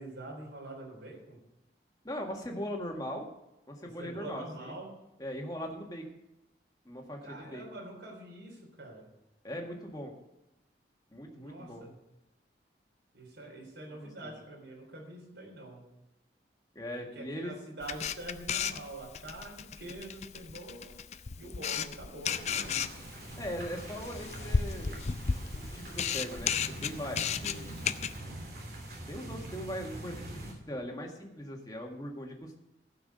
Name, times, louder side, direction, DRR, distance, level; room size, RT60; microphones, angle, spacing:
voice 1, 0.0-1.4 3.8-4.9 7.2-9.1 11.3-11.9 13.1-15.8 17.1-21.0 21.4-22.9, right 1 dB, 80° right, -3 dB, 3.6 m, -45 dB
voice 2, 2.0-3.3 3.7-4.7 5.2-6.1 6.9-7.6 9.4-10.1 11.1-11.8 13.9-14.3 16.8-17.5 23.4-25.0 25.5-26.6 26.8-27.7 29.1-32.6, equal, 20° left, 1 dB, 1.8 m, -40 dB
Camera, 17.8-28.2, left 6 dB, 40° left, 0.4 m, -34 dB
sound 1, 22.2-30.5, right 1 dB, 55° right, 3.1 m, -44 dB
15.5 x 6.0 x 6.6 m, 0.93 s
head